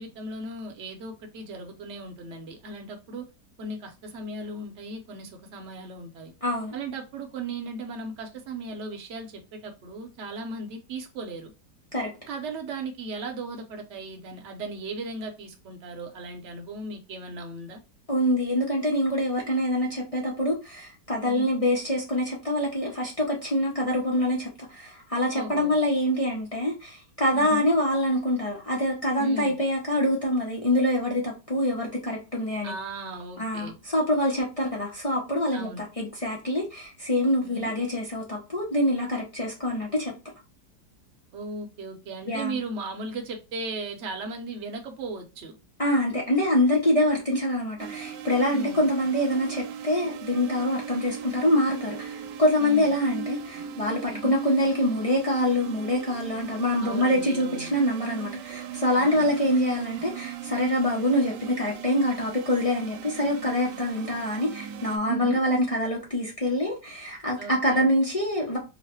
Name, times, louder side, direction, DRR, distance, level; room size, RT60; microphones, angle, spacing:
voice 1, 0.0-3.2 3.6-6.3 6.7-11.5 12.3-17.8 21.2-21.5 25.3-25.7 27.3-27.7 29.2-29.6 32.6-33.7 35.5-35.8 37.4-37.7 41.3-45.6 48.5-48.9 52.6-53.0 54.1-54.4 56.8-57.7 58.9-59.3 65.0-65.4 67.4-67.8, right 2 dB, 55° right, 0.9 m, -36 dB
voice 2, 6.4-6.7 11.9-12.1 18.1-32.7 33.4-40.1 42.3-42.6 45.8-68.6, left 1 dB, 65° left, 0.3 m, -25 dB
sound 1, 47.8-65.0, right 9 dB, 90° right, 1.2 m, -39 dB
3.1 x 2.1 x 4.2 m
omnidirectional pair, 1.8 m